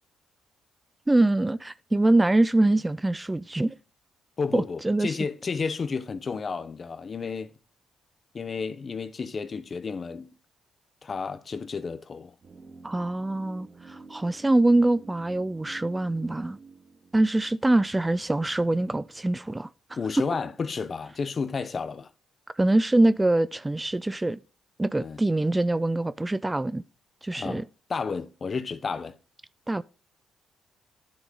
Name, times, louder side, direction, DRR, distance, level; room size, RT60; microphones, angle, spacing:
voice 1, 1.1-3.8 4.5-5.2 12.8-16.6 17.1-20.0 22.5-24.4 24.8-26.8 27.2-27.6 29.7-29.8, right 2 dB, 15° right, 0.4 m, -24 dB
voice 2, 4.4-7.5 8.3-10.3 11.0-12.3 20.0-22.1 25.0-25.2 27.3-27.6 27.9-29.2, left 5 dB, 40° left, 0.9 m, -32 dB
sound 1, 12.4-18.4 18.7-18.8, right 4 dB, 45° right, 1.9 m, -50 dB
10.0 x 6.3 x 3.9 m
cardioid pair, 90°, 0 cm